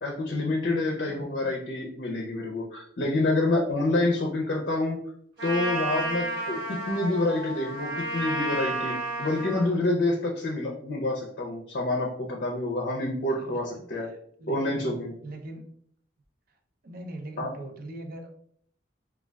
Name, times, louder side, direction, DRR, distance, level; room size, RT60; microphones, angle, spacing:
voice 1, 0.0-5.0 5.4-14.1 14.5-15.1 17.4-17.5, left 2 dB, 50° left, 0 dB, 0.5 m, -27 dB
voice 2, 1.1-1.5 13.4-13.6 14.4-15.6 16.8-18.3, right 1 dB, 50° right, 4 dB, 0.4 m, -41 dB
Trumpet, 5.4-9.7, right 1 dB, 65° right, 1.3 m, -31 dB
3.5 x 2.3 x 2.2 m, 0.63 s
head